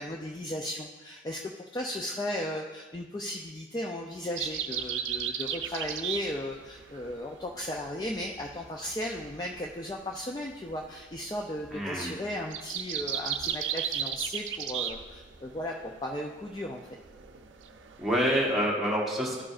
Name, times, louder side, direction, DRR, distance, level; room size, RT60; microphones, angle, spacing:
voice 1, 0.0-16.8, left 1 dB, 20° left, 0 dB, 0.3 m, -36 dB
sound 1, 4.4-18.5, right 9 dB, 85° right, 0.5 m, -36 dB
voice 2, 11.7-12.2 18.0-19.4, equal, ahead, -5 dB, 1.2 m, -27 dB
12.0 x 4.9 x 2.4 m, 1.3 s
head